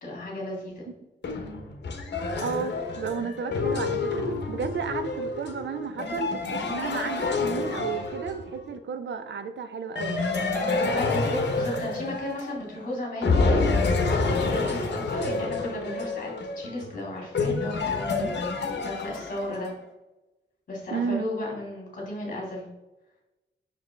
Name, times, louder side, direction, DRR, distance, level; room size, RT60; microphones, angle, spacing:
voice 1, 0.0-0.8 10.9-18.4 18.8-19.7 20.7-22.7, left 1 dB, 45° left, -2 dB, 2.2 m, -34 dB
sound 1, 1.2-8.6 10.0-12.8 13.2-19.7, left 3 dB, 65° left, 1.0 m, -28 dB
voice 2, 2.4-10.2 20.9-21.3, right 6 dB, 70° right, 8 dB, 0.6 m, -33 dB
6.0 x 4.9 x 3.3 m, 1.0 s
wide cardioid pair, 175°, 19 cm